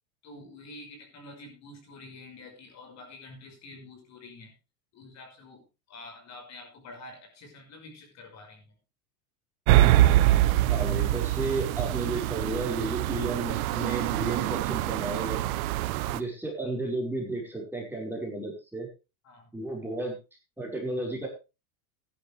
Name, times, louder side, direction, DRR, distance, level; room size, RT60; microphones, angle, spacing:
voice 1, 0.2-4.5 4.9-5.6 5.9-8.7 19.2-19.6, left 2 dB, 35° left, 3 dB, 5.7 m, -47 dB
sound 1, 9.7-16.2, right 14 dB, 70° right, 1.1 m, -24 dB
voice 2, 10.6-15.4 16.1-18.9 19.5-20.2 20.6-21.3, right 2 dB, 5° right, -2 dB, 5.5 m, -33 dB
14.5 x 11.5 x 3.5 m, 0.29 s
supercardioid pair, 130°, 45 cm